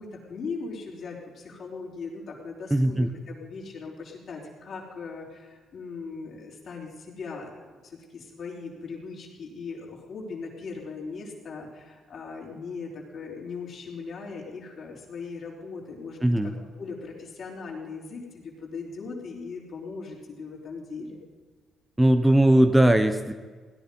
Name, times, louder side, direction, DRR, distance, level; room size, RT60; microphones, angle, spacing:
voice 1, 0.0-7.6 7.8-16.5 16.8-21.2, left 4 dB, 60° left, -2 dB, 4.2 m, -39 dB
voice 2, 2.7-3.1 16.2-16.5 22.0-23.3, right 1 dB, 10° right, 8 dB, 0.8 m, -19 dB
17.0 x 10.5 x 5.4 m, 1.4 s
cardioid pair, 90°, 0 cm